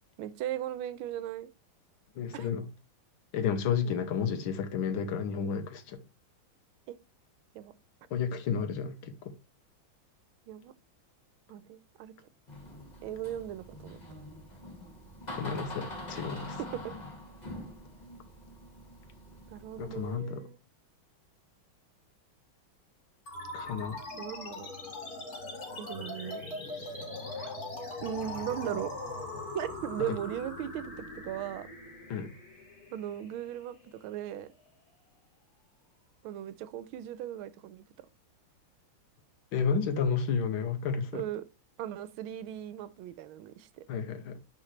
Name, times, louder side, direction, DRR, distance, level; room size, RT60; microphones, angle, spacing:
voice 1, 0.2-1.5 2.3-2.5 3.8-3.9 6.9-7.0 7.5-7.7 10.5-10.7 11.5-12.1 13.0-14.0 16.6-17.0 19.5-20.6 24.2-24.7 25.8-26.4 28.0-28.9 29.5-31.7 32.9-34.5 36.2-38.1 41.1-41.4 41.8-43.8, right 11 dB, 90° right, 1.5 m, -38 dB
voice 2, 2.2-2.7 3.3-6.0 8.1-9.3 15.3-16.6 19.8-20.4 23.5-24.0 30.1-30.2 32.1-32.3 39.5-41.2 43.9-44.4, left 6 dB, 75° left, 1.8 m, -31 dB
Door, 12.5-20.1, left 1 dB, 20° left, 2.0 m, -44 dB
sound 1, 23.3-34.2, left 2 dB, 45° left, 2.9 m, -41 dB
9.8 x 4.4 x 3.2 m
omnidirectional pair, 2.3 m